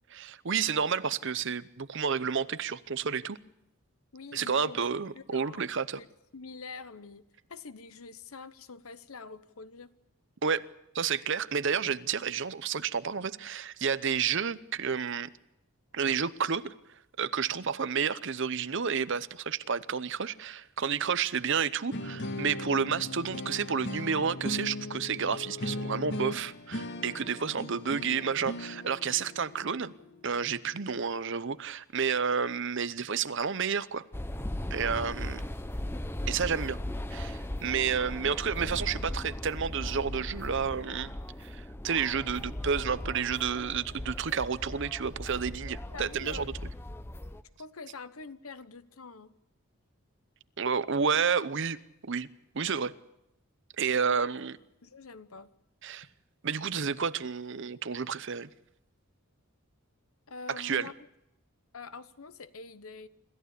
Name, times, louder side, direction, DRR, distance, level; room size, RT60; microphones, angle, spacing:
voice 1, 0.1-3.4 4.3-6.0 10.4-10.7 10.9-15.3 15.9-16.7 17.2-29.9 30.2-34.1 34.7-35.4 36.3-36.8 37.1-41.1 41.4-46.4 50.6-51.8 52.0-52.3 52.5-52.9 53.8-54.6 55.8-56.1 56.4-58.5 60.6-60.9, right 6 dB, 55° right, 0.7 m, -30 dB
voice 2, 4.1-4.8 5.1-5.6 6.0-6.1 6.3-9.9 34.8-35.1 45.9-46.5 47.6-49.3 54.0-54.3 54.8-55.5 60.3-60.9 61.7-63.1, left 4 dB, 75° left, 1.0 m, -45 dB
sound 1, 21.9-30.9, left 1 dB, 55° left, 1.6 m, -38 dB
sound 2, 34.1-47.4, left 1 dB, 10° left, 0.7 m, -38 dB
26.0 x 14.5 x 8.4 m
head